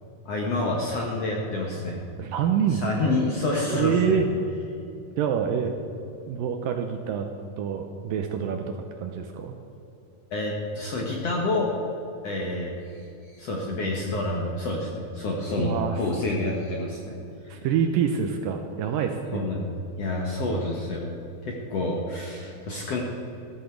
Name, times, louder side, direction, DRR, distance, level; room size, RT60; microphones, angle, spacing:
voice 1, 0.2-2.0 2.7-4.2 10.3-11.7 12.2-12.7 13.3-17.2 19.3-19.7 20.0-21.1 21.4-23.0, left 2 dB, 60° left, -1 dB, 1.7 m, -28 dB
voice 2, 2.2-3.1 3.7-4.3 5.2-5.7 6.3-7.3 7.6-8.7 9.0-9.5 15.6-16.0 17.5-19.5, right 7 dB, 80° right, 5 dB, 2.1 m, -26 dB
14.5 x 13.5 x 4.6 m, 2.9 s
omnidirectional pair, 4.6 m